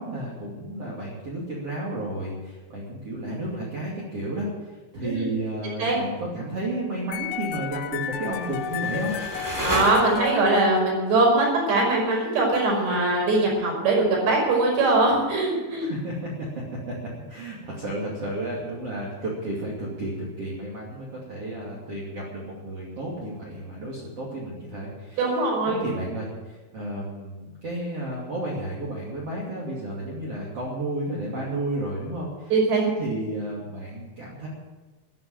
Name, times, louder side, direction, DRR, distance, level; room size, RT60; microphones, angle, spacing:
voice 1, 0.0-9.1 15.7-16.5 16.9-17.0 17.3-32.5 32.8-34.5, right 1 dB, 40° right, -4 dB, 3.1 m, -32 dB
sound 1, 7.1-11.2, left 9 dB, 80° left, 2.6 m, -33 dB
sound 2, 8.2-10.6, equal, 5° right, 1.8 m, -32 dB
voice 2, 9.6-15.9 25.2-25.9 32.5-32.9, right 2 dB, 70° right, -2 dB, 7.6 m, -21 dB
13.5 x 10.0 x 8.9 m, 1.2 s
omnidirectional pair, 5.2 m